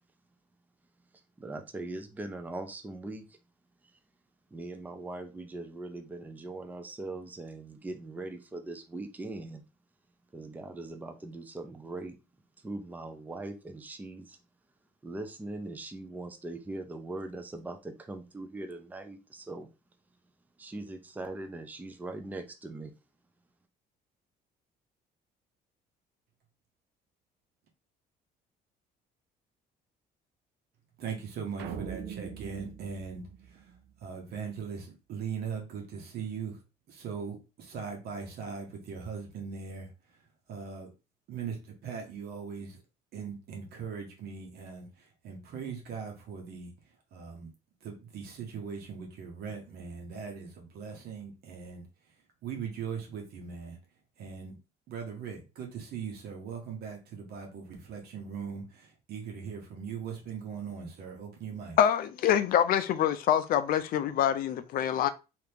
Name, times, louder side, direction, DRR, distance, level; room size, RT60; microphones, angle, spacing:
voice 1, 1.4-3.2 4.5-9.6 10.3-12.2 12.6-14.4 15.0-19.7 20.6-22.9, right 2 dB, 10° right, 0.5 m, -40 dB
voice 2, 31.0-40.9 41.3-42.8 43.1-47.5 47.8-53.8 54.2-54.6 54.9-61.8, right 6 dB, 70° right, 1.0 m, -40 dB
sound 1, 31.6-34.1, right 8 dB, 85° right, 0.5 m, -41 dB
voice 3, 61.8-65.1, left 10 dB, 60° left, 0.4 m, -25 dB
2.8 x 2.5 x 3.4 m
cardioid pair, 110°, 17 cm